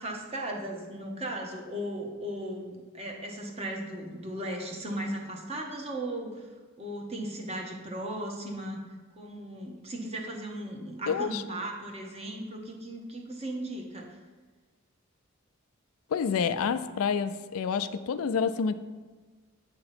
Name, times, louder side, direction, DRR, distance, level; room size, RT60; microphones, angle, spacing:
voice 1, 0.0-6.5 6.8-8.8 9.2-14.2, right 1 dB, 30° right, 0 dB, 0.8 m, -36 dB
voice 2, 11.1-11.4 16.1-18.7, left 6 dB, 80° left, 12 dB, 0.3 m, -28 dB
7.8 x 2.9 x 5.8 m, 1.4 s
head